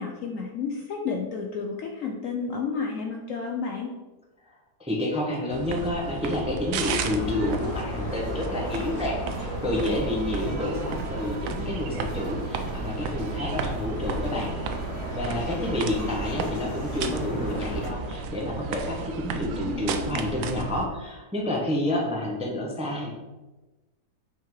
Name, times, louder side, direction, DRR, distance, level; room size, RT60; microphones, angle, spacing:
voice 1, 0.0-3.9 19.4-20.4, left 5 dB, 65° left, 1 dB, 0.8 m, -32 dB
voice 2, 4.8-14.5 15.1-23.1, left 1 dB, 5° right, -2 dB, 0.7 m, -29 dB
sound 1, 5.5-20.9, right 4 dB, 65° right, 0.8 m, -33 dB
sound 2, 6.8-17.9, left 1 dB, 45° left, 1.1 m, -36 dB
Bowed string instrument, 9.7-16.4, right 2 dB, 50° right, 1.6 m, -46 dB
5.6 x 3.7 x 4.6 m, 1.1 s
omnidirectional pair, 1.8 m